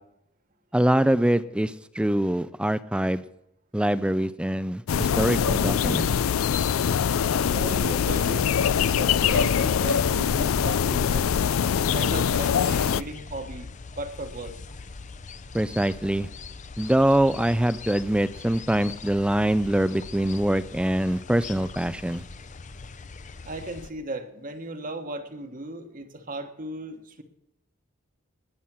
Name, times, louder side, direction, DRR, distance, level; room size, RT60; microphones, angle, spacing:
voice 1, 0.7-3.2 3.7-6.1 15.5-16.3 16.8-22.2, right 1 dB, 5° right, 14 dB, 0.4 m, -24 dB
sound 1, 4.9-13.0, left 7 dB, 80° left, 0.4 m, -23 dB
voice 2, 7.4-11.4 11.9-14.5 23.4-27.2, right 1 dB, 45° right, 7 dB, 1.4 m, -36 dB
sound 2, 9.2-23.9, left 4 dB, 35° left, 0.7 m, -41 dB
19.5 x 7.3 x 6.0 m, 0.79 s
head